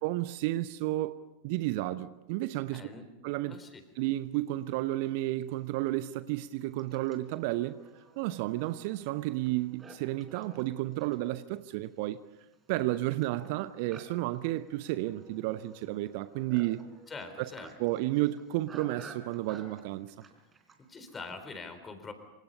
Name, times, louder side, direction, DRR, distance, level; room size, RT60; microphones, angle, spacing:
voice 1, 0.0-2.8 3.2-3.6 4.0-7.8 8.2-12.2 12.7-16.8 17.4-17.5 17.8-20.1, right 16 dB, 45° right, 0.9 m, -32 dB
voice 2, 2.7-3.1 3.5-3.8 17.1-17.7 20.9-22.1, left 4 dB, 15° left, 4.0 m, -43 dB
Livestock farm animals working animals, 4.8-4.9 5.6-21.6, right 4 dB, 20° right, 3.8 m, -54 dB
27.0 x 26.0 x 5.6 m
figure-of-eight pair, 90°, 0 cm